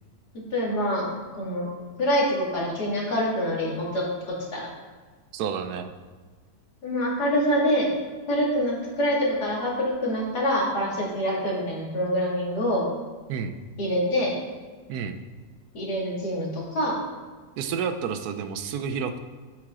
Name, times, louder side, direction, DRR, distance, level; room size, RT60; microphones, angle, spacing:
voice 1, 0.5-1.1 1.4-1.7 2.0-4.1 4.5-4.7 6.8-7.9 8.3-12.8 13.8-14.4 15.7-17.0, equal, 80° left, -4 dB, 2.7 m, -25 dB
voice 2, 5.3-5.9 13.3-13.6 14.9-15.2 17.6-19.2, right 6 dB, 75° right, 9 dB, 1.1 m, -30 dB
8.0 x 7.9 x 3.7 m, 1.4 s
omnidirectional pair, 1.7 m